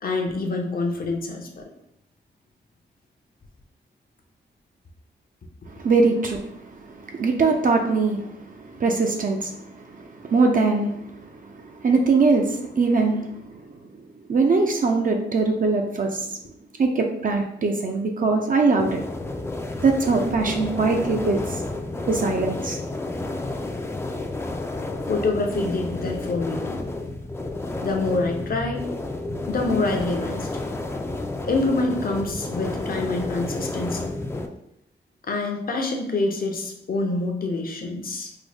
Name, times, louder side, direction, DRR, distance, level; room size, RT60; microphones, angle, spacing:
voice 1, 0.0-1.6 25.1-26.8 27.8-28.9 29.5-30.5 31.4-34.1 35.3-38.3, left 3 dB, 50° left, 3 dB, 0.7 m, -26 dB
voice 2, 5.7-13.7 14.3-16.3 16.8-19.0 19.8-21.6 22.1-22.8, right 3 dB, 45° right, 3 dB, 0.5 m, -22 dB
sound 1, 18.8-34.5, left 2 dB, 15° left, 0.4 m, -31 dB
3.7 x 2.0 x 3.4 m, 0.78 s
cardioid pair, 75°, 19 cm